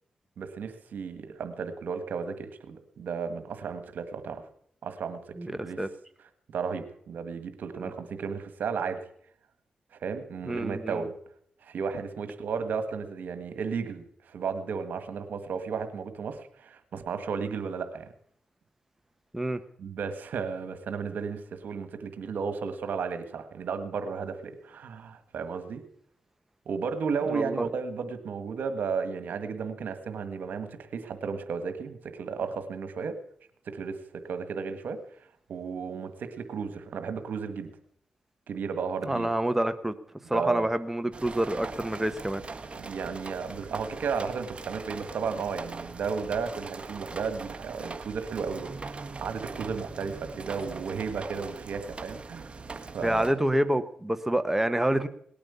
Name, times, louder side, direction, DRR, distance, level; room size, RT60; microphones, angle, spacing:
voice 1, 0.4-4.4 4.8-5.2 5.5-5.8 6.5-9.0 10.0-11.1 11.6-18.1 19.8-25.8 26.6-33.1 33.6-35.0 35.5-37.7 38.5-39.3 40.3-40.7 42.7-53.3, right 5 dB, 80° right, 9 dB, 1.6 m, -34 dB
voice 2, 10.4-11.0 19.3-19.6 27.3-27.5 39.0-39.9 40.3-42.4 53.0-55.1, right 1 dB, 10° right, 9 dB, 1.1 m, -27 dB
sound 1, 41.1-53.3, right 4 dB, 40° right, 1.5 m, -41 dB
18.5 x 8.9 x 6.9 m, 0.63 s
cardioid pair, 60°, 3 cm